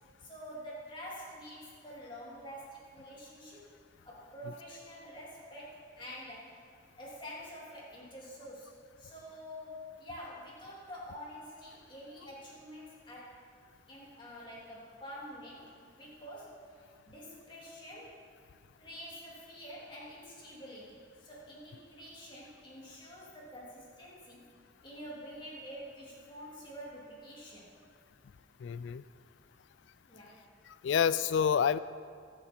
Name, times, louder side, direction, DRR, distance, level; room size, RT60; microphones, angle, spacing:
voice 1, 0.2-3.7 4.0-6.6 7.0-13.4 13.9-16.6 17.0-18.2 18.8-24.4 24.8-27.7 30.1-30.4, equal, 25° left, -5 dB, 3.1 m, -47 dB
voice 2, 28.6-29.0 30.7-31.8, left 7 dB, 70° left, 16 dB, 0.3 m, -28 dB
22.0 x 7.4 x 4.5 m, 2.1 s
head